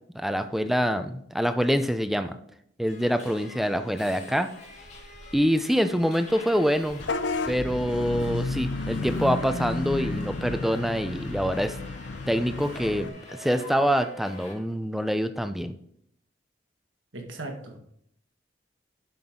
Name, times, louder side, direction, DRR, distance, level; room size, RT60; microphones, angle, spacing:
voice 1, 0.1-2.4 2.8-4.5 5.3-7.0 7.5-11.8 12.3-15.7, equal, ahead, 9 dB, 0.5 m, -25 dB
Subway metro underground, 2.9-14.5, left 1 dB, 35° left, 1.9 m, -45 dB
Vehicle horn car horn honking / Bus, 7.0-13.1, left 3 dB, 75° left, 0.6 m, -32 dB
voice 2, 17.1-17.8, right 2 dB, 85° right, 3 dB, 1.7 m, -37 dB
10.5 x 6.1 x 3.7 m, 0.71 s
head